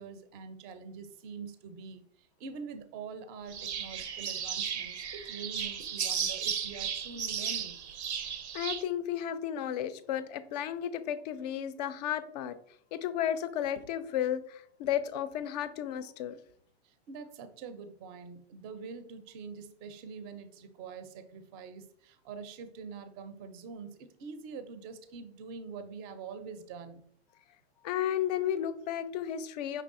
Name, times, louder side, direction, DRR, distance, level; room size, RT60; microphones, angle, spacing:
voice 1, 0.0-2.1 2.4-7.8 16.8-27.0, right 5 dB, 30° right, 10 dB, 0.5 m, -45 dB
sound 1, 3.5-8.8, right 7 dB, 80° right, 0.6 m, -35 dB
voice 2, 8.5-12.6 12.9-16.4 27.8-29.8, left 10 dB, 40° left, 13 dB, 0.4 m, -33 dB
5.4 x 3.3 x 2.5 m, 0.64 s
hypercardioid pair, 115°, 33 cm